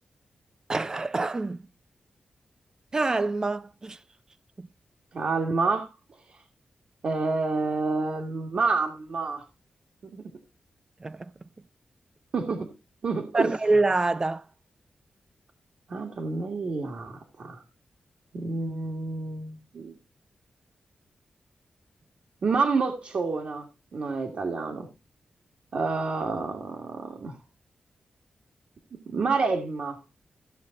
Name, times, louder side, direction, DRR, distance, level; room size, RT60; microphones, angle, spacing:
voice 1, 0.7-1.6 2.9-4.0 4.6-4.7 11.0-11.3 13.3-14.4, right 3 dB, 30° right, 0.5 m, -26 dB
voice 2, 5.1-5.9 7.0-9.4 10.1-10.2 12.3-12.7 13.0-13.5 15.9-17.6 18.3-19.9 22.4-24.9 25.7-27.4 28.9-30.0, right 4 dB, 65° right, 1.7 m, -28 dB
15.0 x 7.0 x 3.8 m
wide cardioid pair, 100°, 2 cm